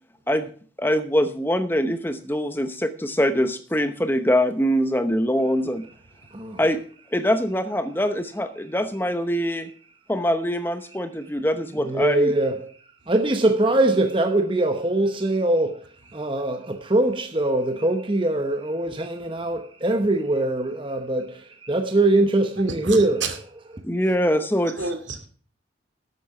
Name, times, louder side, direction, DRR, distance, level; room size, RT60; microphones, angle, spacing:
voice 1, 0.8-5.8 6.6-6.8 7.1-9.7 10.1-12.3 23.8-24.7, equal, 10° left, 0.8 m, -23 dB
voice 2, 11.8-12.7 13.1-15.8 16.1-23.2, right 2 dB, 25° right, 0.9 m, -22 dB
voice 3, 22.7-23.4 24.8-25.3, right 4 dB, 75° right, 2.4 m, -30 dB
12.0 x 8.4 x 5.9 m
head